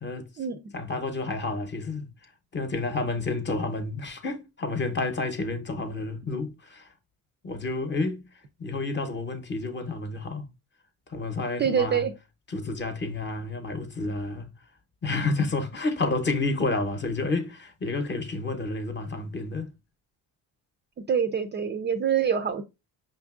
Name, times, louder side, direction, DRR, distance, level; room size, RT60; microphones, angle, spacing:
voice 1, 0.7-2.1 2.5-6.9 7.4-8.3 8.6-10.5 11.1-12.1 12.5-14.5 15.0-19.7, left 3 dB, 30° left, 0.8 m, -30 dB
voice 2, 11.6-12.1 21.1-22.6, right 7 dB, 30° right, 0.4 m, -25 dB
5.2 x 2.5 x 2.4 m
supercardioid pair, 85°, 37 cm